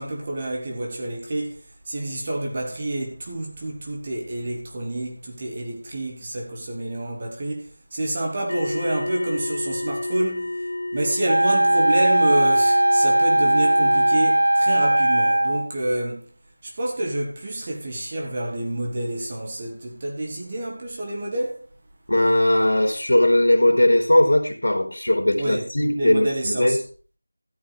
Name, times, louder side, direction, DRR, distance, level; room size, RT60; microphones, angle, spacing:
voice 1, 0.0-1.6 1.9-10.6 10.9-16.3 16.6-21.7 25.4-26.8, right 1 dB, 20° right, 1.7 m, -28 dB
sound 1, 8.5-14.2, left 1 dB, 45° left, 2.2 m, -31 dB
Wind instrument woodwind instrument, 11.3-15.7, right 1 dB, 70° right, 0.5 m, -18 dB
voice 2, 22.1-26.8, left 1 dB, 70° left, 3.5 m, -19 dB
13.5 x 8.2 x 4.9 m
figure-of-eight pair, 180°, 0 cm